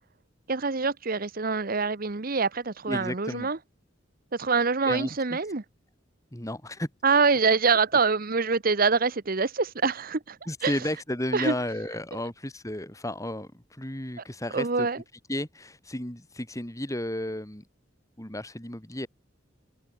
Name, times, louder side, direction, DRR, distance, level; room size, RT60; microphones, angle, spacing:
voice 1, 0.5-3.6 4.3-5.6 7.0-10.4 10.6-10.7 11.3-11.5 14.5-15.0, right 4 dB, 45° right, 1.1 m, -25 dB
voice 2, 2.9-3.5 4.8-5.4 6.3-6.9 10.5-14.9 15.3-17.6 18.2-19.1, left 1 dB, 15° left, 3.1 m, -33 dB
head